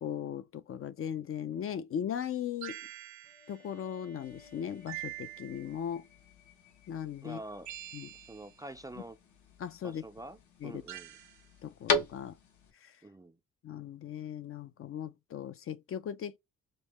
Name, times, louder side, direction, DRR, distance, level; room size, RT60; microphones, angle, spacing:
voice 1, 0.0-2.8 3.5-6.0 6.9-7.4 7.9-8.1 9.6-10.0 10.6-10.8 11.6-12.4 12.7-13.0 13.6-16.4, left 9 dB, 45° left, 0.5 m, -38 dB
sound 1, 2.6-3.6 4.9-5.8 7.6-8.6 10.9-11.4, right 14 dB, 70° right, 0.6 m, -45 dB
Bowed string instrument, 3.2-7.0, left 3 dB, 30° left, 0.8 m, -60 dB
sound 2, 4.2-12.7, left 3 dB, 70° left, 1.1 m, -40 dB
voice 2, 7.2-7.7 8.1-9.2 9.8-11.2 13.0-13.4, right 1 dB, 10° right, 0.4 m, -46 dB
5.2 x 2.1 x 2.9 m
cardioid pair, 90°, 30 cm